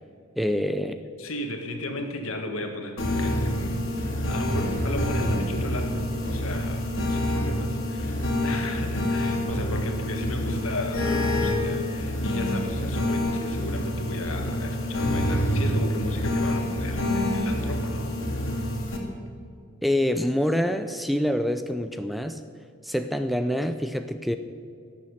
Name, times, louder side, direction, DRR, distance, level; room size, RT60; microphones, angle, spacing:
voice 1, 0.4-1.0 19.8-22.4 22.8-24.4, equal, ahead, 9 dB, 0.4 m, -26 dB
voice 2, 1.2-6.8 7.1-18.4, left 1 dB, 75° left, 4 dB, 1.8 m, -35 dB
sound 1, 3.0-19.0, left 1 dB, 60° left, 2.3 m, -27 dB
12.0 x 7.1 x 9.7 m, 2.4 s
head